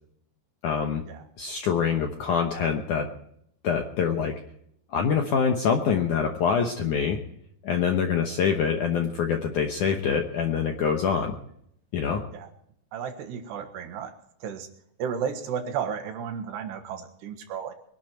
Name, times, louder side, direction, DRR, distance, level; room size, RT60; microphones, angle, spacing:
voice 1, 0.6-1.0 1.4-3.1 3.6-4.3 4.9-7.2 7.6-11.4 11.9-12.2, left 6 dB, 70° left, 4 dB, 1.9 m, -25 dB
voice 2, 12.9-14.1 14.4-14.7 15.0-17.7, right 7 dB, 75° right, 6 dB, 3.5 m, -33 dB
22.5 x 11.5 x 4.5 m, 0.72 s
omnidirectional pair, 5.0 m